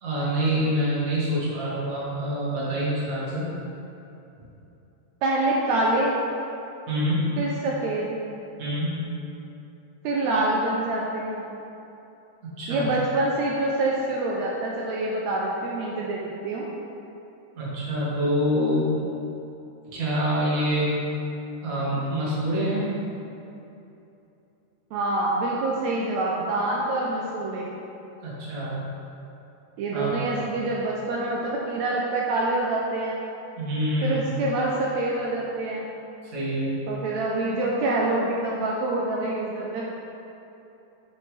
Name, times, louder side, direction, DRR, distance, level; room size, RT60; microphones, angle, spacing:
voice 1, 0.0-3.5 6.9-7.4 8.6-9.1 12.6-12.9 17.5-18.9 19.9-20.9 21.6-22.9 28.2-28.8 29.9-30.1 30.4-30.5 33.6-34.2 36.3-36.7, equal, 40° right, -8 dB, 1.4 m, -26 dB
voice 2, 5.2-6.2 7.4-8.2 10.0-11.5 12.7-16.7 24.9-27.7 29.8-33.2 34.0-35.9 36.9-39.9, right 2 dB, 85° right, -3 dB, 1.6 m, -26 dB
8.2 x 5.3 x 3.3 m, 2.9 s
omnidirectional pair, 3.9 m